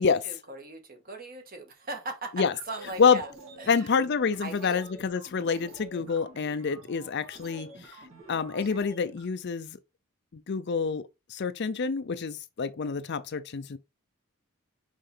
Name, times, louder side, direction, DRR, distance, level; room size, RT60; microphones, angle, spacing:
voice 1, 0.0-3.3 3.6-3.9 4.4-4.8, right 3 dB, 45° right, 1.4 m, -39 dB
sound 1, 2.4-9.2, right 2 dB, 70° right, 2.2 m, -49 dB
voice 2, 3.7-8.0 8.3-9.8 10.3-13.8, left 5 dB, 55° left, 0.5 m, -27 dB
5.7 x 5.2 x 3.3 m
head